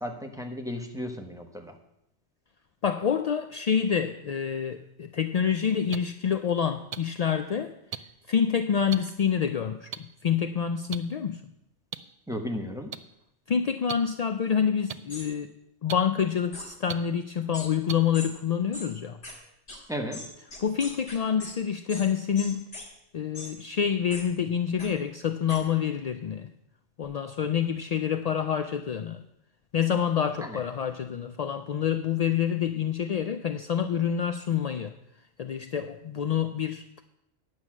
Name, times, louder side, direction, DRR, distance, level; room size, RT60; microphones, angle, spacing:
voice 1, 0.0-1.8 12.3-12.9 19.9-20.3 30.4-30.6, equal, 5° right, 3 dB, 1.1 m, -34 dB
voice 2, 2.8-7.7 8.3-9.9 10.2-11.4 13.5-15.5 15.8-19.2 20.6-22.7 23.1-26.5 27.0-29.2 29.7-34.9 35.4-37.0, left 8 dB, 65° left, 9 dB, 0.4 m, -27 dB
sound 1, 5.9-6.0 6.9-7.0 7.9-8.0 8.9-9.0 9.9-10.0 10.9-11.0 11.9-12.0 12.9-13.0 13.9-14.0 14.9-15.0 15.9-16.0 16.9-17.0 17.9-18.0 18.9-19.0, right 8 dB, 55° right, 0.4 m, -34 dB
sound 2, 15.1-15.3 16.5-16.7 17.5-17.7 18.1-18.3 18.7-18.9 19.2-19.3 19.7-19.8 20.1-21.5 21.9-22.1 22.4-22.9 23.3-23.5 24.1-24.2 24.8-24.9 25.5-25.6, left 2 dB, 80° left, 2.5 m, -40 dB
9.7 x 6.4 x 7.3 m, 0.79 s
omnidirectional pair, 1.2 m